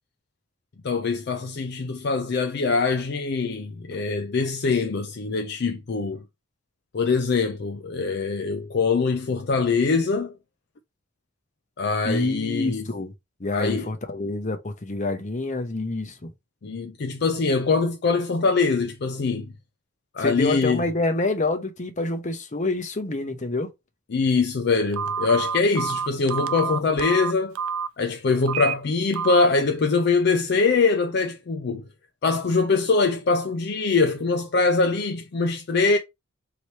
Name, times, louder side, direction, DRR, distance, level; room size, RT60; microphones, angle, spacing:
voice 1, 0.8-6.2 6.9-10.4 11.8-12.8 13.5-13.9 16.6-19.5 20.1-20.8 24.1-27.6 28.0-31.9 32.2-36.0, left 4 dB, 50° left, 0.4 m, -23 dB
voice 2, 12.0-13.1 13.4-16.3 20.2-23.7, left 2 dB, 35° left, 0.8 m, -27 dB
Telephone, 24.9-27.9 28.4-28.7 29.1-29.5, right 6 dB, 85° right, 0.4 m, -28 dB
3.2 x 3.0 x 4.1 m
head